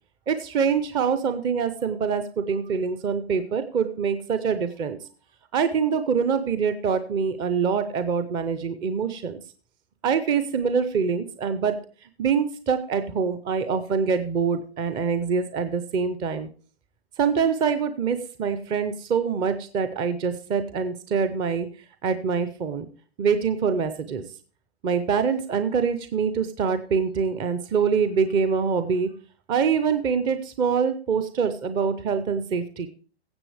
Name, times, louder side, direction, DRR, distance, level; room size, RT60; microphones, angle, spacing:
voice 1, 0.3-5.0 5.5-9.4 10.0-11.8 12.2-16.5 17.2-21.7 22.0-22.9 23.2-24.2 24.8-29.1 29.5-32.9, right 6 dB, 15° right, 10 dB, 0.5 m, -25 dB
16.0 x 7.4 x 3.3 m, 0.38 s
hypercardioid pair, 135°, 33 cm